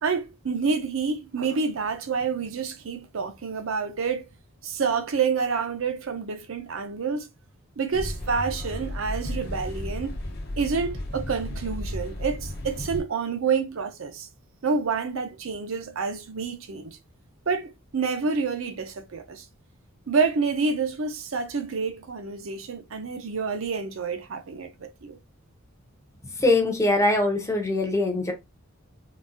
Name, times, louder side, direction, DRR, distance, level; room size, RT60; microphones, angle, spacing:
voice 1, 0.0-4.2 4.6-7.3 7.8-10.2 10.6-14.3 14.6-17.0 17.5-19.5 20.1-25.2, right 5 dB, 65° right, 0.6 m, -28 dB
sound 1, 7.9-13.0, left 1 dB, 50° left, 0.8 m, -33 dB
voice 2, 26.4-28.3, left 2 dB, 15° left, 0.6 m, -22 dB
3.8 x 2.6 x 2.2 m
head